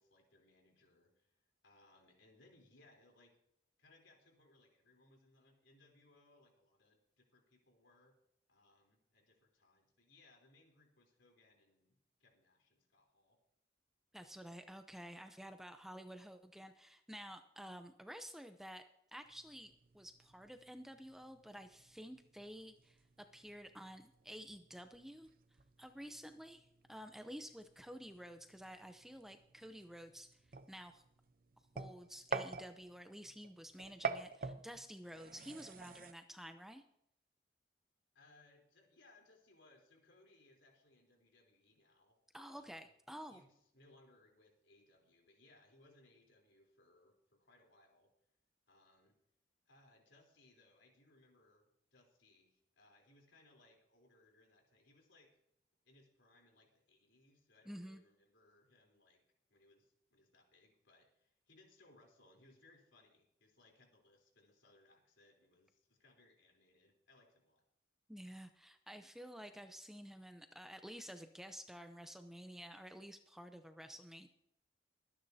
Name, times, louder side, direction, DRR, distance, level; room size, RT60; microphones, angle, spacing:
voice 1, 0.0-3.4 3.8-8.1 8.5-13.4 38.1-42.2 42.5-42.9 43.2-48.1 48.7-49.2 49.7-55.4 55.9-59.2 59.5-67.6, left 2 dB, 85° left, 1 dB, 3.7 m, -68 dB
voice 2, 14.1-18.8 19.1-25.3 25.8-30.4 30.7-31.0 31.7-36.8 42.3-43.4 57.7-58.0 68.1-74.3, equal, ahead, 7 dB, 0.6 m, -51 dB
sound 1, 19.2-36.1, right 4 dB, 50° right, 0.7 m, -49 dB
23.5 x 9.9 x 2.8 m, 0.75 s
head